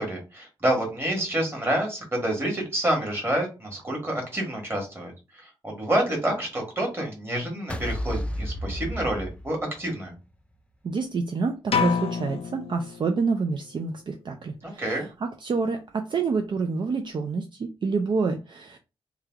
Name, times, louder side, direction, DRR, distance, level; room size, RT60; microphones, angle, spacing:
voice 1, 0.0-10.1 14.6-15.1, right 1 dB, 25° right, 1.5 m, -28 dB
sound 1, 7.7-10.0, equal, 10° left, 0.4 m, -32 dB
voice 2, 10.8-18.8, right 4 dB, 55° right, 0.4 m, -28 dB
sound 2, 11.7-13.6, left 6 dB, 90° left, 0.5 m, -28 dB
3.2 x 2.3 x 3.5 m
wide cardioid pair, 130°, 10 cm